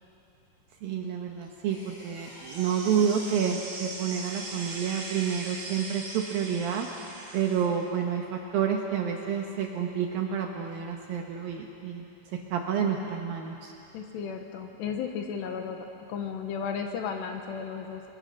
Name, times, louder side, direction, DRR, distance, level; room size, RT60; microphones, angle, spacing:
voice 1, 0.8-6.9 7.3-12.0 12.3-13.7, right 7 dB, 80° right, 2 dB, 2.1 m, -29 dB
sound 1, 1.4-4.1 5.8-6.1, equal, 55° left, 10.0 m, -48 dB
sound 2, 2.5-7.7, right 2 dB, 40° right, 2.9 m, -40 dB
voice 2, 13.9-18.0, left 6 dB, 75° left, 4 dB, 2.9 m, -34 dB
24.5 x 22.5 x 6.3 m, 2.8 s
omnidirectional pair, 5.7 m